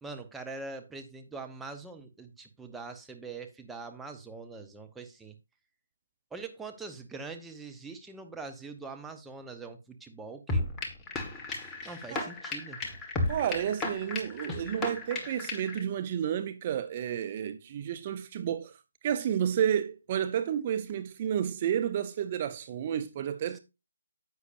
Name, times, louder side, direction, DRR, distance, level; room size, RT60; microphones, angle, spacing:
voice 1, 0.0-5.4 6.3-10.7 11.8-12.8, right 4 dB, 5° right, 0.9 m, -43 dB
sound 1, 10.5-15.8, left 2 dB, 10° left, 1.4 m, -34 dB
voice 2, 13.3-18.8 19.0-23.6, right 9 dB, 30° right, 0.6 m, -31 dB
10.0 x 8.1 x 2.5 m
figure-of-eight pair, 150°, 0 cm